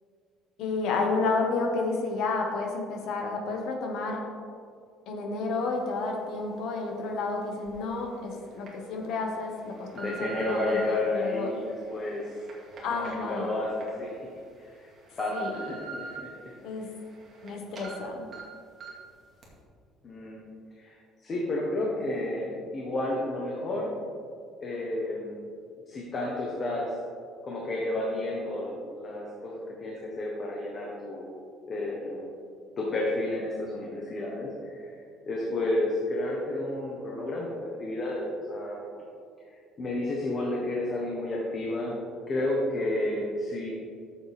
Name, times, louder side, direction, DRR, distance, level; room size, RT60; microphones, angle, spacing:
voice 1, 0.6-4.2 5.1-11.5 12.8-13.6 15.3-15.6 16.6-16.9 17.4-18.3, left 3 dB, 60° left, 1 dB, 1.6 m, -31 dB
sound 1, 7.7-7.8 8.4-8.7 9.3-10.9 11.6-13.9 14.3-14.4 14.9-16.2 16.6-17.5 17.8-17.9 18.3-18.4 18.8-19.1 19.4-19.5, right 4 dB, 30° right, 2.0 m, -43 dB
voice 2, 9.9-12.3 12.9-14.3 14.6-14.7 15.2-16.3 20.0-20.4 20.8-23.9 24.6-25.4 25.9-27.0 27.4-31.3 31.7-32.3 32.8-38.8 39.5-42.0 42.3-43.7, left 1 dB, 25° left, -3 dB, 1.2 m, -31 dB
13.5 x 7.1 x 3.5 m, 2.3 s
cardioid pair, 175°, 0 cm